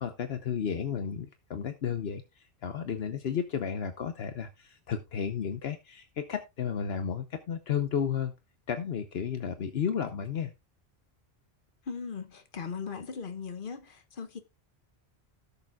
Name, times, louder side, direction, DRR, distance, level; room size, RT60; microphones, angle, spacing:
voice 1, 0.0-2.2 2.6-8.3 8.7-10.5, left 7 dB, 70° left, 1.1 m, -33 dB
voice 2, 11.8-14.4, left 5 dB, 55° left, 1.3 m, -38 dB
17.0 x 6.9 x 2.3 m
omnidirectional pair, 1.1 m